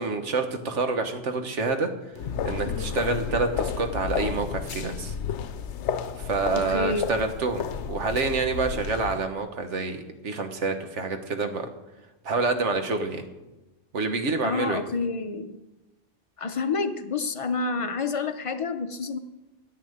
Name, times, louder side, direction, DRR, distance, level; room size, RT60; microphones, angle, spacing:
voice 1, 0.0-1.9 2.4-5.1 6.2-11.7 12.2-13.2 13.9-14.8, right 3 dB, 75° right, 7 dB, 1.5 m, -27 dB
sound 1, 2.2-9.2, left 7 dB, 70° left, 1.0 m, -32 dB
voice 2, 6.5-7.1 14.4-15.6 16.4-19.2, left 4 dB, 35° left, 9 dB, 0.6 m, -28 dB
10.0 x 7.3 x 9.1 m, 1.0 s
omnidirectional pair, 1.2 m